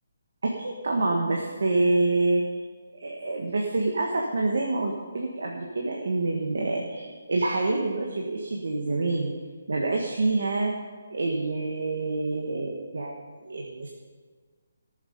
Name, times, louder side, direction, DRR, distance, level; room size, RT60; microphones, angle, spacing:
voice 1, 0.4-2.4 3.0-9.3 9.7-10.7 11.1-13.1 13.4-13.9, right 2 dB, 75° right, 0 dB, 1.5 m, -27 dB
18.0 x 7.4 x 5.3 m, 1.5 s
hypercardioid pair, 170°, 0 cm